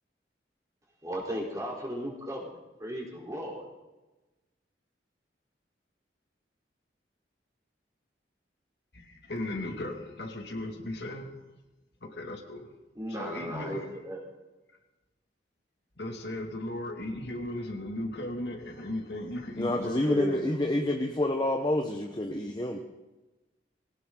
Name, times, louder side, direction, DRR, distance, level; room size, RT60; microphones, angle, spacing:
voice 1, 1.0-2.5 2.8-3.6 13.0-14.2 20.0-20.4, equal, 20° right, -2 dB, 3.8 m, -35 dB
voice 2, 8.9-11.4 12.0-12.7 13.1-14.0 16.0-20.4, left 1 dB, 65° left, 2 dB, 2.3 m, -37 dB
voice 3, 19.6-22.8, left 1 dB, 25° left, 2 dB, 1.1 m, -28 dB
20.5 x 18.0 x 3.9 m, 1.1 s
head